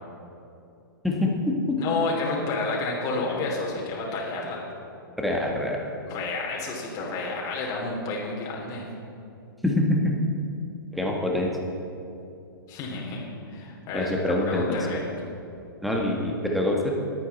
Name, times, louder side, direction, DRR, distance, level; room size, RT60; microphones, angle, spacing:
voice 1, 1.0-1.8 5.2-5.8 9.6-10.2 10.9-11.5 13.9-14.9 15.8-16.9, left 1 dB, ahead, -1 dB, 1.6 m, -25 dB
voice 2, 1.8-4.6 6.1-8.9 12.7-13.2 13.5-15.0, left 3 dB, 30° left, -3 dB, 3.0 m, -30 dB
21.0 x 8.8 x 4.2 m, 2.7 s
hypercardioid pair, 120°, 12 cm